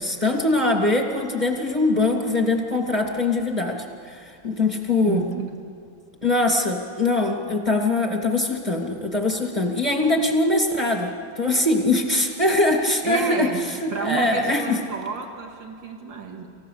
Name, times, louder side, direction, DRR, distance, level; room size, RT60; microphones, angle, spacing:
voice 1, 0.0-5.2 6.2-11.1 11.4-13.5 13.8-14.8, left 2 dB, 15° right, 1 dB, 2.2 m, -22 dB
voice 2, 5.1-5.5 13.0-16.5, right 6 dB, 75° right, 2 dB, 2.6 m, -31 dB
28.0 x 15.5 x 6.7 m, 2.5 s
omnidirectional pair, 2.1 m